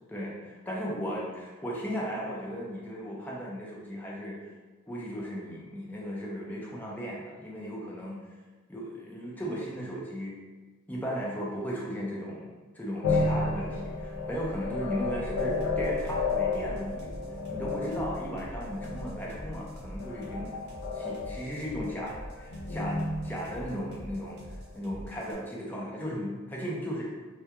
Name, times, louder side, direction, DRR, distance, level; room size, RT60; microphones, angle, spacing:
voice 1, 0.1-4.4 4.9-8.2 8.7-10.4 10.9-17.1 17.5-20.5 20.9-24.4 24.7-27.0, equal, 10° left, -5 dB, 0.4 m, -36 dB
sound 1, 13.0-24.5, left 3 dB, 75° left, 0.4 m, -32 dB
sound 2, 15.4-25.3, right 1 dB, 50° right, 0.6 m, -44 dB
2.2 x 2.2 x 2.8 m, 1.3 s
head